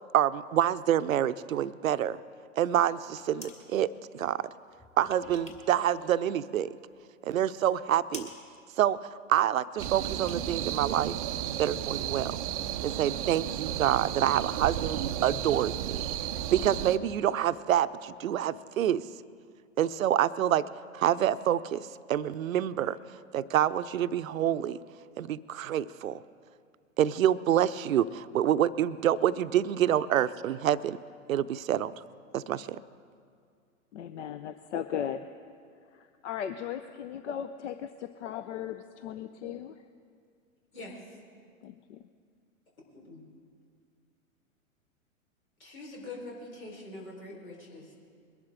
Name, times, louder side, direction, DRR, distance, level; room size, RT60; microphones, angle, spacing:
voice 1, 0.1-2.2 2.6-4.5 5.0-6.7 7.2-8.3 8.8-9.0 9.3-11.1 11.6-12.4 12.8-16.0 16.5-19.0 19.8-20.7 20.9-23.0 23.3-24.8 25.2-26.2 27.0-31.0 31.3-31.9 32.3-32.8, right 11 dB, 70° right, 15 dB, 0.6 m, -27 dB
sound 1, 2.9-3.6 4.7-5.8 6.0-6.9 7.3-7.4 7.7-7.8 8.1-8.4 9.7-10.4 10.7-10.8, left 2 dB, 15° left, 1.5 m, -48 dB
sound 2, 9.8-17.0, right 11 dB, 30° right, 0.4 m, -33 dB
voice 2, 33.9-35.3 35.8-39.9 41.6-42.1, left 9 dB, 60° left, 10 dB, 0.7 m, -37 dB
voice 3, 40.7-41.2 42.9-43.2 45.6-47.9, left 2 dB, 75° left, -1 dB, 4.6 m, -44 dB
21.5 x 11.5 x 3.7 m, 2.2 s
hypercardioid pair, 110°, 42 cm